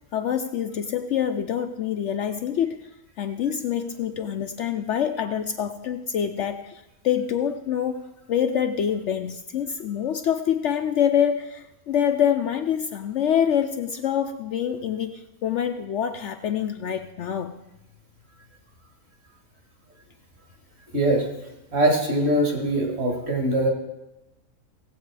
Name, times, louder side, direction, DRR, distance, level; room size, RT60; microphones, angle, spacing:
voice 1, 0.1-2.8 3.2-8.0 8.3-17.6, left 9 dB, 65° left, 8 dB, 0.7 m, -26 dB
voice 2, 20.9-21.3 21.7-23.7, right 1 dB, 45° right, 1 dB, 2.3 m, -22 dB
17.0 x 7.8 x 4.7 m, 0.96 s
omnidirectional pair, 1.6 m